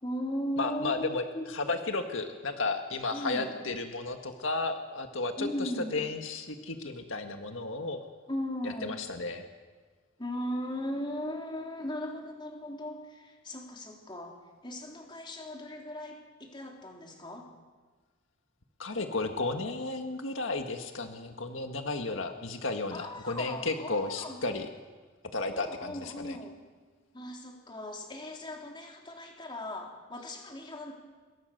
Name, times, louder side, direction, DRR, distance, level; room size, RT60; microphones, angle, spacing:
voice 1, 0.0-1.5 3.1-3.6 5.4-6.0 8.3-9.0 10.2-14.4 14.6-17.5 22.9-24.4 25.5-26.6 27.1-30.9, left 1 dB, 25° left, 0 dB, 3.7 m, -38 dB
voice 2, 0.6-1.2 1.5-8.0 8.6-9.4 18.8-24.7 25.3-26.4, left 3 dB, 80° left, 5 dB, 1.7 m, -33 dB
26.0 x 22.5 x 6.7 m, 1.4 s
head